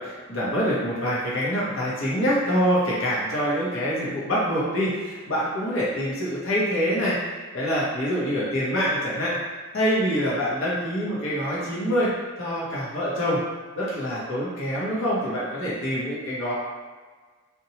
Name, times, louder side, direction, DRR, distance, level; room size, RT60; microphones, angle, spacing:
voice 1, 0.0-7.2 7.5-9.4 9.7-12.1 12.4-13.4 13.8-16.5, equal, 65° left, -7 dB, 0.8 m, -25 dB
2.8 x 2.2 x 2.8 m, 1.5 s
head